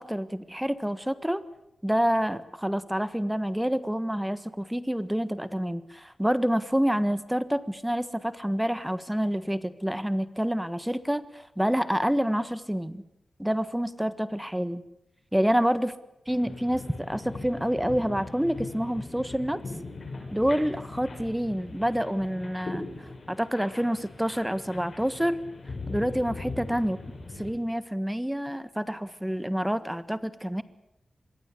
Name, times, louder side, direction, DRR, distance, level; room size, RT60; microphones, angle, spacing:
voice 1, 0.0-1.4 1.8-13.0 13.4-14.8 15.3-15.9 16.3-19.6 20.3-25.4 25.9-27.0 27.4-30.6, equal, 5° right, 13 dB, 1.4 m, -28 dB
sound 1, 16.3-27.5, left 3 dB, 60° left, 8.0 m, -40 dB
25.5 x 22.0 x 8.4 m, 0.84 s
wide cardioid pair, 80°, 0 cm